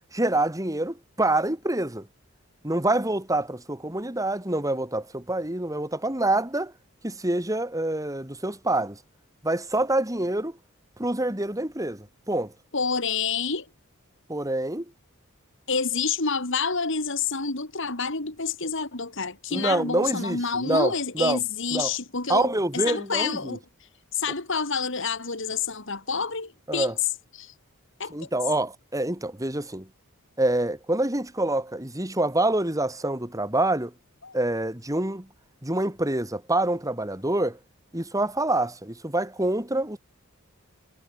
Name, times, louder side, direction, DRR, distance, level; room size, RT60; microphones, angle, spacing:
voice 1, 0.1-2.1 2.6-6.7 7.0-9.0 9.4-10.6 11.0-12.5 14.3-14.8 19.5-21.4 21.7-21.9 22.3-23.6 26.7-26.9 28.1-29.9 30.4-33.9 34.3-35.3 35.6-37.6 37.9-40.0, right 2 dB, 15° right, 3.1 m, -26 dB
voice 2, 12.7-13.7 15.7-23.6 24.1-26.9 27.3-27.5 28.0-28.3 34.2-34.4, left 5 dB, 65° left, 2.9 m, -28 dB
head